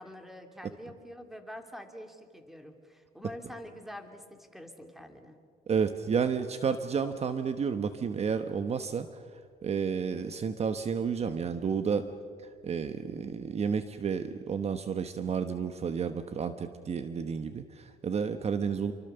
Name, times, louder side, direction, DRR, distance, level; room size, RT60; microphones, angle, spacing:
voice 1, 0.0-5.4, equal, ahead, 5 dB, 2.9 m, -46 dB
voice 2, 5.7-9.1 9.6-12.0 12.6-18.9, right 6 dB, 40° right, 9 dB, 1.2 m, -31 dB
28.5 x 24.5 x 7.0 m, 2.2 s
cardioid pair, 110°, 17 cm